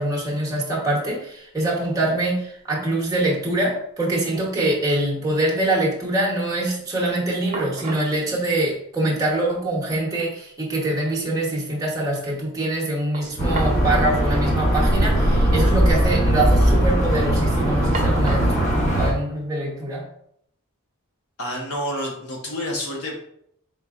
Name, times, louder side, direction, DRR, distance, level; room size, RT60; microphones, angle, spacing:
voice 1, 0.0-20.0, right 1 dB, 15° right, -4 dB, 1.0 m, -24 dB
sound 1, 1.1-1.2 1.4-2.0 2.3-3.2 3.5-3.6 7.0-7.1 7.5-8.2 9.3-9.4 9.8-9.9 13.1-13.9 14.2-14.3 15.2-15.4 15.7-16.2 16.6-17.0 17.9-18.6, right 2 dB, 30° right, 0.6 m, -35 dB
sound 2, 13.4-19.1, right 1 dB, 35° left, 1.3 m, -19 dB
voice 2, 21.4-23.1, equal, 70° left, 0 dB, 1.1 m, -28 dB
4.2 x 3.8 x 2.4 m, 0.70 s
head